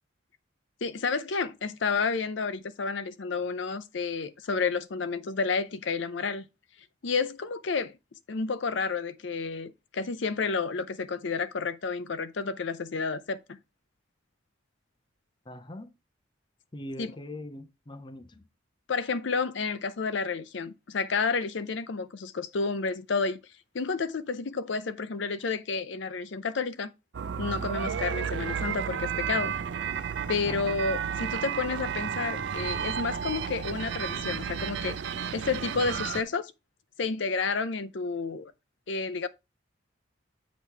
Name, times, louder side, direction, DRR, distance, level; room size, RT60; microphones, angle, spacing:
voice 1, 0.8-6.4 7.0-7.9 8.3-13.6 17.0-17.1 18.9-23.4 23.7-26.9 27.4-29.5 30.3-35.0 35.3-36.5 37.0-38.5 38.9-39.3, left 4 dB, 70° left, 0.5 m, -30 dB
voice 2, 15.5-15.9 16.7-18.5 30.5-30.8, left 1 dB, 25° left, 0.5 m, -41 dB
sound 1, 27.1-36.2, right 7 dB, 65° right, 0.5 m, -32 dB
8.2 x 3.0 x 5.7 m
head